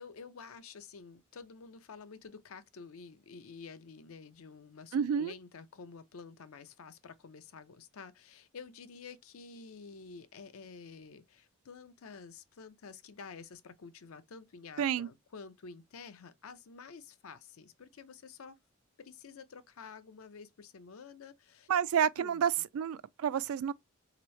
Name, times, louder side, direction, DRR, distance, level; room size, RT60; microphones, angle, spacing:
voice 1, 0.0-18.6 19.0-21.7 22.2-22.4, left 5 dB, 80° left, 0.5 m, -50 dB
voice 2, 4.9-5.3 14.8-15.1 21.7-23.7, right 8 dB, 90° right, 0.3 m, -30 dB
3.4 x 2.9 x 3.1 m
head